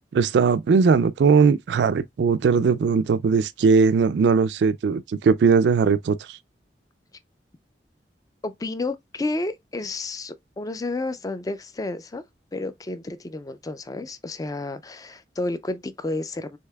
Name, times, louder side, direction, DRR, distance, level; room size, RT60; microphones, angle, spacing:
voice 1, 0.1-6.4, right 5 dB, 75° right, 0.3 m, -19 dB
voice 2, 8.4-12.2 12.5-16.6, left 2 dB, 20° left, 0.4 m, -31 dB
6.4 x 2.8 x 2.2 m
head